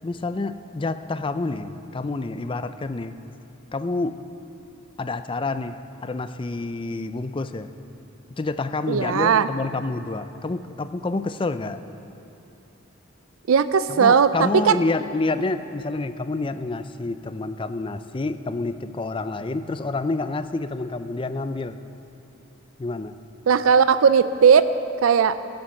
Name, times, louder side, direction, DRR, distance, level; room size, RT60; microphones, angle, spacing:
voice 1, 0.0-3.2 3.7-4.2 5.0-7.7 8.4-11.8 13.9-21.8 22.8-23.2, left 3 dB, 25° left, 11 dB, 0.4 m, -28 dB
voice 2, 8.9-9.5 13.5-14.3 14.7-14.8 23.5-24.6 25.0-25.4, right 6 dB, 90° right, 13 dB, 0.4 m, -17 dB
15.5 x 7.9 x 7.1 m, 2.9 s
head